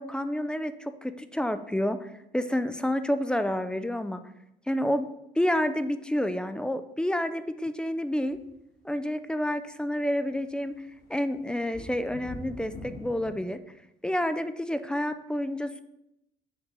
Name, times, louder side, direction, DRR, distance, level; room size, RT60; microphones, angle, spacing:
voice 1, 0.0-4.2 4.7-5.1 5.4-8.4 8.8-10.7 11.1-13.6 14.0-15.8, left 1 dB, 5° left, 11 dB, 0.4 m, -29 dB
sound 1, 8.3-8.4 10.4-10.5 10.7-13.4, left 1 dB, 45° left, 1.7 m, -43 dB
7.1 x 3.3 x 5.2 m, 0.84 s
cardioid pair, 110°, 17 cm